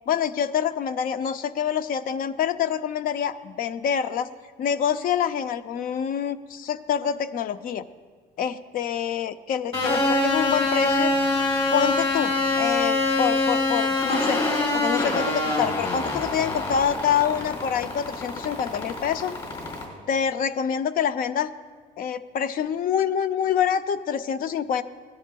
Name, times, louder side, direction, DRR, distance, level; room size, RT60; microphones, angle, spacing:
voice 1, 0.1-4.3 4.6-7.8 8.4-11.1 11.7-14.4 14.7-19.3 20.1-21.5 22.0-24.8, left 8 dB, 55° left, 12 dB, 0.5 m, -26 dB
sound 1, 9.7-19.8, left 2 dB, 35° left, 3.6 m, -25 dB
17.0 x 11.0 x 2.3 m, 1.5 s
cardioid pair, 110°, 17 cm